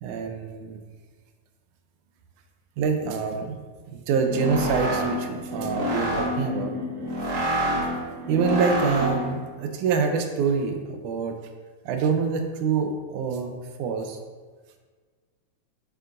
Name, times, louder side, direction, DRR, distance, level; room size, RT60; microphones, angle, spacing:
voice 1, 0.0-0.8 2.8-3.6 3.9-6.8 8.3-11.4 11.9-13.5 13.8-14.2, right 5 dB, 80° right, 5 dB, 2.2 m, -26 dB
sound 1, 4.1-9.4, equal, 60° right, 2.2 m, -27 dB
8.5 x 7.4 x 2.6 m, 1.5 s
omnidirectional pair, 3.6 m